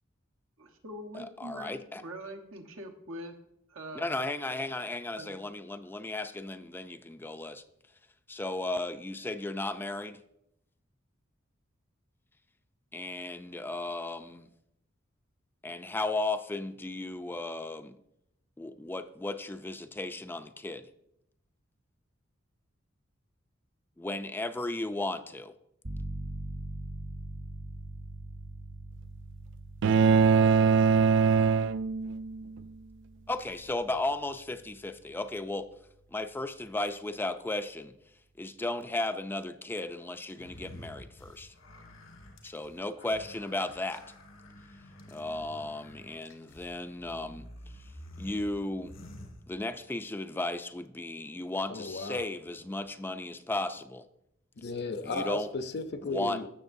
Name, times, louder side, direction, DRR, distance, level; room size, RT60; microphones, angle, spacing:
voice 1, 0.6-3.4 3.7-4.1 5.2-5.4, right 1 dB, 85° right, 1.3 m, -43 dB
voice 2, 1.1-2.0 3.9-7.6 8.3-10.2 12.9-14.5 15.6-18.0 18.6-20.9 24.0-25.5 33.3-35.7 36.1-37.9 38.4-41.5 42.4-44.0 45.1-47.5 48.2-48.9 49.5-54.0 55.0-55.5 56.0-56.5, left 2 dB, 10° left, 0.4 m, -35 dB
sound 1, 25.8-36.4, right 1 dB, 40° right, 0.9 m, -43 dB
sound 2, 29.8-32.4, right 5 dB, 65° right, 0.3 m, -22 dB
sound 3, 40.3-50.0, left 1 dB, 85° left, 1.9 m, -50 dB
voice 3, 51.7-52.2 54.6-56.5, left 3 dB, 55° left, 0.7 m, -35 dB
14.5 x 6.7 x 2.6 m
head